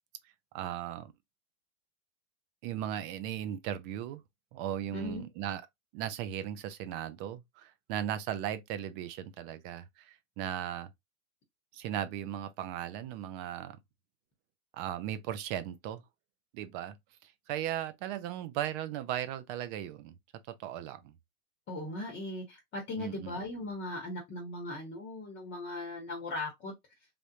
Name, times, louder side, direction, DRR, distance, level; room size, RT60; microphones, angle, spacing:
voice 1, 0.5-1.1 2.6-4.2 4.5-5.6 5.9-10.9 11.7-13.8 14.7-16.0 16.5-17.0 17.2-20.1 20.5-21.1 23.0-23.4, right 11 dB, 40° right, 0.6 m, -37 dB
voice 2, 4.9-5.3 21.7-26.7, left 2 dB, 25° left, 1.1 m, -38 dB
3.5 x 2.5 x 2.8 m
hypercardioid pair, 120°, 43 cm